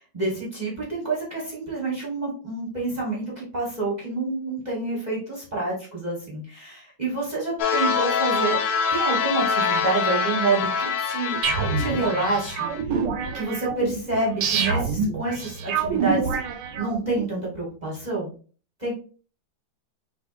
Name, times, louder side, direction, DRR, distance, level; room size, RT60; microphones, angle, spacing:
voice 1, 0.1-8.6 8.9-11.4 11.8-12.7 13.3-16.3 16.8-18.3 18.8-18.9, right 3 dB, 25° right, -5 dB, 1.3 m, -28 dB
sound 1, 7.6-12.8, left 5 dB, 85° left, 1.5 m, -25 dB
sound 2, 11.4-17.2, right 5 dB, 75° right, 1.4 m, -27 dB
6.1 x 3.2 x 2.5 m, 0.38 s
omnidirectional pair, 2.1 m